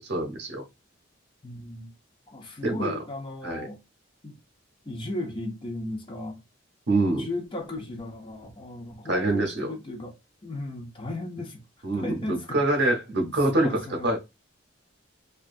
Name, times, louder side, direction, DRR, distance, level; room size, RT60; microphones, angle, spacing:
voice 1, 0.1-0.6 2.6-3.0 3.4-3.7 6.9-7.3 9.1-9.7 11.8-14.2, right 2 dB, 60° right, 0.7 m, -25 dB
voice 2, 1.4-1.9 2.3-3.8 4.2-4.4 4.9-6.4 7.2-10.1 10.4-11.6 11.9-12.6 13.2-14.2, left 1 dB, 25° left, 0.5 m, -35 dB
2.7 x 2.2 x 2.4 m
head